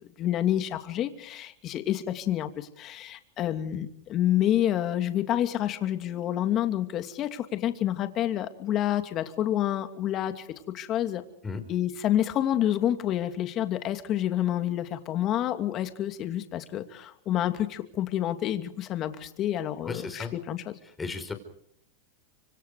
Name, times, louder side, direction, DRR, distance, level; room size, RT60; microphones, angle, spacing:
voice 1, 0.2-10.5 10.7-11.2 11.7-20.6, left 11 dB, 35° left, 8 dB, 2.7 m, -28 dB
voice 2, 19.8-20.3 21.0-21.3, left 4 dB, 15° left, 8 dB, 4.9 m, -34 dB
26.5 x 25.0 x 4.9 m, 0.71 s
supercardioid pair, 125°, 0 cm